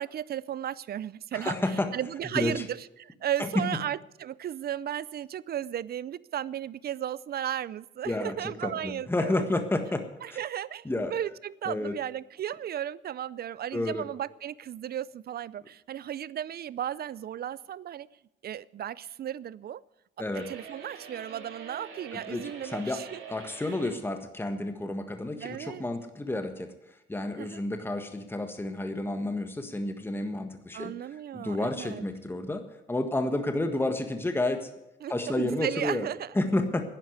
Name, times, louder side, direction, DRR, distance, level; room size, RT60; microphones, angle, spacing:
voice 1, 0.0-1.6 1.9-9.4 10.2-18.1 18.4-19.8 20.5-23.2 25.4-25.9 27.4-27.6 30.7-32.1 35.0-36.3, right 10 dB, 50° right, 20 dB, 0.5 m, -35 dB
voice 2, 1.3-1.9 2.3-2.5 3.4-3.6 8.0-10.4 10.8-11.2 11.7-11.9 13.7-14.0 20.2-20.5 22.1-23.0 23.3-30.9 31.3-34.7 35.1-36.1 36.3-36.9, left 2 dB, 10° left, 6 dB, 1.6 m, -30 dB
sound 1, 20.3-24.0, right 5 dB, 75° right, 2.9 m, -45 dB
11.0 x 10.0 x 9.5 m, 0.93 s
cardioid pair, 90°, 20 cm